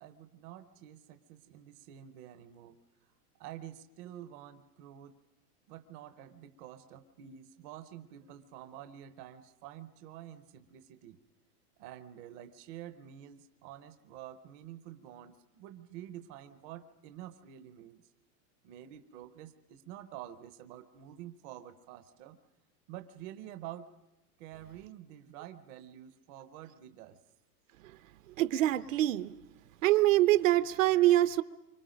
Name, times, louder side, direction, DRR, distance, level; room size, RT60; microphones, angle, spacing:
voice 1, 0.0-2.8 3.4-5.2 5.7-11.2 11.8-18.0 18.6-22.4 22.9-23.9 24.4-27.2, right 11 dB, 25° right, 9 dB, 0.7 m, -48 dB
voice 2, 28.4-29.4 29.8-31.4, right 15 dB, 60° right, 13 dB, 0.8 m, -25 dB
27.5 x 25.0 x 5.2 m, 0.98 s
supercardioid pair, 170°, 46 cm